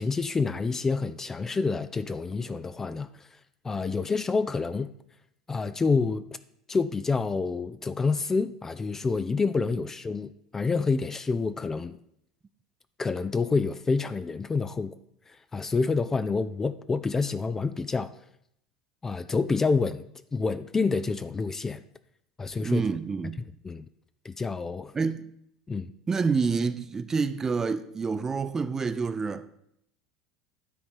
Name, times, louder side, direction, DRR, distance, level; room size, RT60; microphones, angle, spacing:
voice 1, 0.0-3.1 3.6-4.9 5.5-6.2 6.7-12.0 13.0-14.9 15.5-18.1 19.0-20.0 20.3-21.8 22.4-22.8 23.6-23.8 24.2-24.9 25.7-25.9, left 4 dB, 20° left, 0.4 m, -28 dB
voice 2, 22.6-23.4 24.9-25.3 26.1-29.5, right 5 dB, 20° right, 0.6 m, -28 dB
10.0 x 4.2 x 7.6 m
figure-of-eight pair, 70°, 2 cm